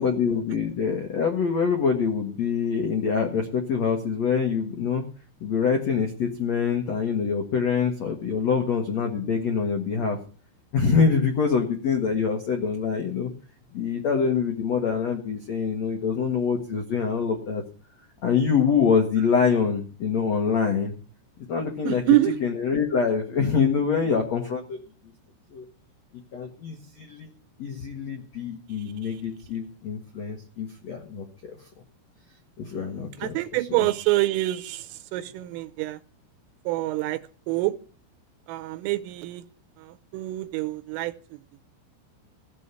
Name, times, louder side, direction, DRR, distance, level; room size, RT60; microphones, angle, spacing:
voice 1, 0.0-5.0 5.4-10.2 10.7-13.3 13.7-17.6 18.2-20.9 21.5-22.0 22.4-24.8 25.5-25.6 26.3-27.3 27.6-31.6 32.6-33.3 33.7-33.8, left 6 dB, 80° left, 3 dB, 1.5 m, -25 dB
voice 2, 21.8-22.4 29.0-29.2 32.7-36.0 36.7-37.2 37.5-37.7 38.5-39.4 39.8-41.4, right 18 dB, 80° right, 11 dB, 3.4 m, -26 dB
16.0 x 7.7 x 8.3 m, 0.40 s
omnidirectional pair, 6.0 m